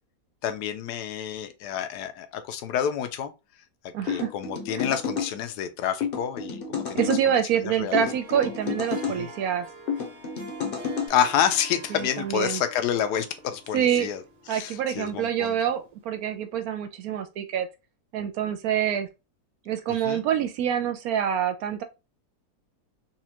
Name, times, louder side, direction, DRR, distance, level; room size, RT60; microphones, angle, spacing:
voice 1, 0.4-3.3 4.0-7.1 7.6-8.5 9.1-9.3 11.1-14.2 14.5-15.6 19.9-20.2, left 9 dB, 80° left, 1.1 m, -29 dB
voice 2, 3.9-4.3 4.7-4.8 6.9-9.7 11.9-12.6 13.7-14.1 14.5-17.7 18.1-19.1 19.7-21.8, right 9 dB, 70° right, 1.0 m, -26 dB
sound 1, 4.1-5.3 6.0-7.2 7.9-9.2 9.9-11.1, left 6 dB, 45° left, 0.8 m, -30 dB
Harp, 7.8-16.1, right 2 dB, 35° right, 1.3 m, -46 dB
4.2 x 2.4 x 2.8 m
omnidirectional pair, 1.7 m